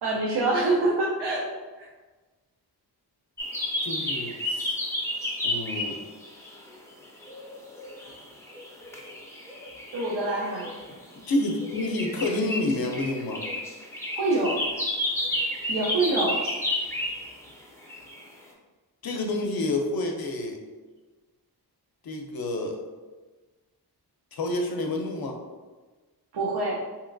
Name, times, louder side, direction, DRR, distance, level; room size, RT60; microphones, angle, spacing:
voice 1, 0.0-1.5 1.8-1.9 9.9-10.7 14.2-14.6 15.7-16.4 26.3-26.8, right 2 dB, 90° right, -4 dB, 0.6 m, -25 dB
sound 1, 3.4-6.7 7.0-17.5 17.8-18.2, left 1 dB, 5° left, 0.4 m, -32 dB
voice 2, 3.8-4.8 5.4-6.0 11.3-13.4 19.0-20.6 22.0-22.8 24.3-25.4, left 2 dB, 65° left, 3 dB, 0.6 m, -29 dB
2.9 x 2.8 x 2.5 m, 1.3 s
wide cardioid pair, 110°, 40 cm